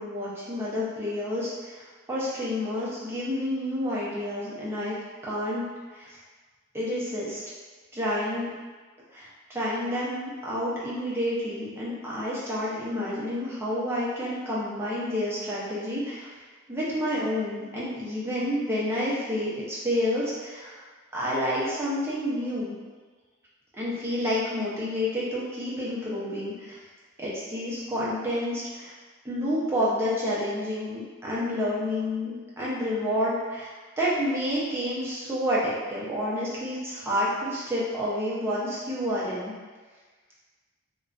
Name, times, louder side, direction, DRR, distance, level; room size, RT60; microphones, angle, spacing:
voice 1, 0.0-4.9 5.2-5.6 5.9-6.2 6.7-7.4 7.9-8.5 9.1-16.3 16.7-20.9 21.1-22.7 23.7-26.8 27.2-28.9 29.2-39.5, left 1 dB, 10° right, -8 dB, 0.6 m, -29 dB
2.5 x 2.2 x 2.4 m, 1.4 s
head